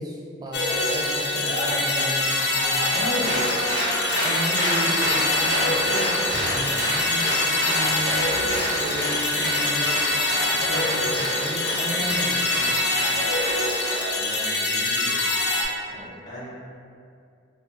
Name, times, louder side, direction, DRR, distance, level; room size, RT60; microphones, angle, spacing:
voice 1, 0.0-3.4 4.2-10.1 10.5-12.9, right 1 dB, 20° right, -3 dB, 0.4 m, -34 dB
sound 1, 0.5-15.6, left 2 dB, 60° left, 0.4 m, -24 dB
sound 2, 1.4-4.9, equal, 80° left, 0.8 m, -34 dB
Applause, 2.8-14.4, equal, 70° right, 1.4 m, -29 dB
voice 2, 14.2-15.2 15.8-16.5, equal, 20° left, -10 dB, 0.9 m, -40 dB
2.9 x 2.5 x 3.4 m, 2.3 s
head